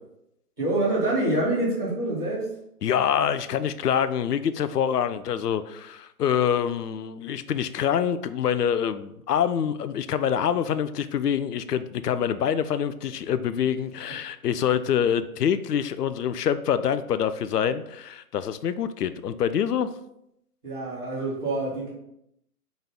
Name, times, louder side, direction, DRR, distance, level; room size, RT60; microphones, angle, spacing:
voice 1, 0.6-2.5 20.6-21.9, right 1 dB, 5° right, -22 dB, 0.6 m, -26 dB
voice 2, 2.8-19.9, left 8 dB, 80° left, 13 dB, 0.5 m, -25 dB
3.9 x 3.5 x 3.8 m, 0.79 s
hypercardioid pair, 155°, 47 cm